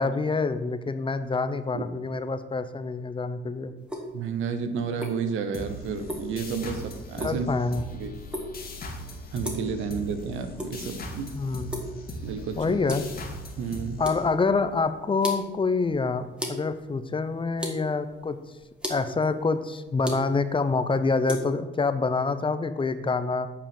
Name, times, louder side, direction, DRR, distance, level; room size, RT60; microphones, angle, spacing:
voice 1, 0.0-3.7 7.2-7.8 11.3-11.8 12.6-13.0 14.0-18.4 18.9-23.5, left 4 dB, 25° left, 11 dB, 0.6 m, -26 dB
sound 1, 3.8-21.4, equal, 5° right, 1.7 m, -39 dB
voice 2, 4.1-7.5 7.9-8.1 9.3-11.3 12.2-12.8 13.6-14.0, right 6 dB, 90° right, 8 dB, 0.9 m, -31 dB
sound 2, 5.5-14.8, left 1 dB, 50° left, 1.7 m, -39 dB
8.8 x 4.9 x 5.3 m, 1.1 s
cardioid pair, 90°, 20 cm